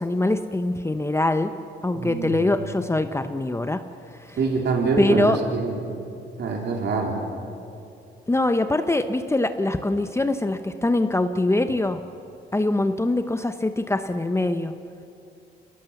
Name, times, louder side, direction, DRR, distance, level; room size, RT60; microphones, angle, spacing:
voice 1, 0.0-1.5 1.8-3.8 4.2-4.4 5.0-5.4 8.3-12.0 12.5-14.7, left 2 dB, 15° left, 8 dB, 0.9 m, -23 dB
voice 2, 1.9-2.5 4.4-5.8 6.4-7.2, right 4 dB, 60° right, 0 dB, 3.9 m, -25 dB
27.0 x 18.5 x 7.1 m, 2.6 s
cardioid pair, 90°, 20 cm